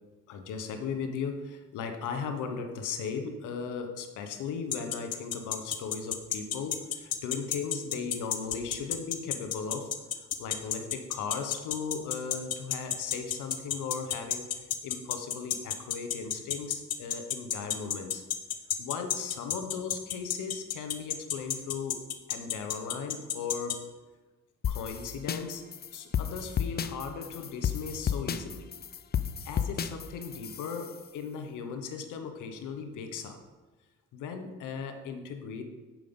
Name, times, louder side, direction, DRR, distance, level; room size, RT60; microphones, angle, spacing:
voice 1, 0.3-9.9 10.2-14.5 14.8-18.2 18.8-22.0 22.3-23.8 24.7-25.6 25.9-28.7 29.4-33.4 34.1-35.6, left 5 dB, 85° left, 6 dB, 1.0 m, -37 dB
sound 1, 4.7-23.7, left 10 dB, 55° left, 0.8 m, -30 dB
sound 2, 24.6-31.0, left 8 dB, 35° left, 0.4 m, -33 dB
7.5 x 5.0 x 5.4 m, 1.3 s
cardioid pair, 90°, 30 cm